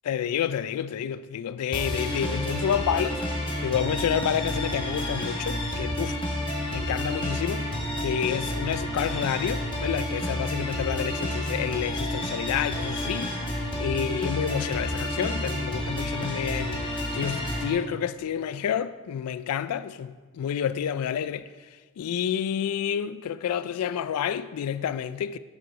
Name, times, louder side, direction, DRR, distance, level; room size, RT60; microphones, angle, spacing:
voice 1, 0.1-3.2 3.6-6.2 6.7-7.7 8.0-16.8 17.1-21.5 22.0-25.4, left 8 dB, 90° left, 0.3 m, -29 dB
sound 1, 1.7-17.7, left 1 dB, 20° left, 1.0 m, -30 dB
7.5 x 6.1 x 4.7 m
head